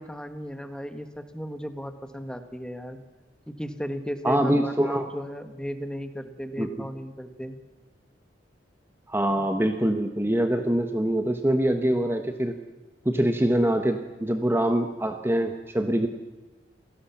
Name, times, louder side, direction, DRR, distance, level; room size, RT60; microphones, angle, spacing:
voice 1, 0.0-3.0 3.5-7.6, equal, 5° left, 9 dB, 1.4 m, -35 dB
voice 2, 4.2-5.1 6.6-6.7 9.1-12.6 13.0-16.1, right 1 dB, 15° right, 6 dB, 1.0 m, -24 dB
27.5 x 17.5 x 7.2 m, 1.2 s
head